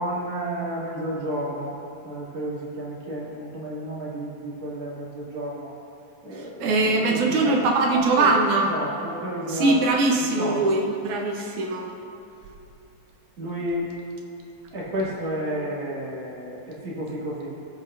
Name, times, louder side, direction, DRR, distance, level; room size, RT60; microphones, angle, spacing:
voice 1, 0.0-1.8 2.0-5.7 6.2-6.7 7.1-7.6 8.1-8.3 8.7-9.9 10.4-10.8 13.4-13.9 14.7-17.5, right 1 dB, 50° right, -8 dB, 3.4 m, -31 dB
voice 2, 6.3-8.7 9.5-11.9, right 2 dB, 70° right, 0 dB, 2.4 m, -22 dB
22.0 x 8.4 x 2.6 m, 2.8 s
omnidirectional pair, 3.7 m